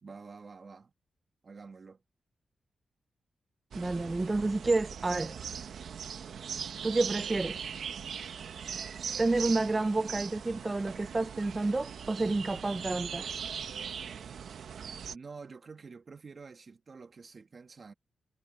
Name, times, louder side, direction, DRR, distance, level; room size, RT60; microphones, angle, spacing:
voice 1, 0.0-0.9 1.4-2.0 15.1-17.9, right 4 dB, 50° right, 2.0 m, -48 dB
voice 2, 3.7-5.4 6.8-7.6 9.2-13.3, right 2 dB, 25° right, 0.6 m, -29 dB
sound 1, 3.7-15.1, right 7 dB, 75° right, 1.2 m, -40 dB
cardioid pair, 70°, 0 cm